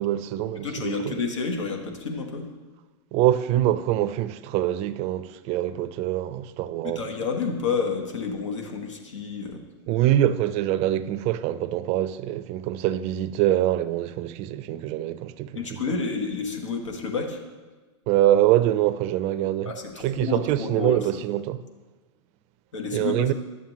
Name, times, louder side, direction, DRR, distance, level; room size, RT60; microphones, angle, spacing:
voice 1, 0.0-1.2 3.1-7.1 9.9-15.8 18.1-19.7 20.0-21.6 22.9-23.3, right 13 dB, 45° right, 0.4 m, -24 dB
voice 2, 0.6-2.5 6.8-9.6 15.5-17.4 19.6-21.0 22.7-23.3, left 4 dB, 90° left, 1.2 m, -30 dB
11.0 x 7.3 x 3.0 m
hypercardioid pair, 110°, 15 cm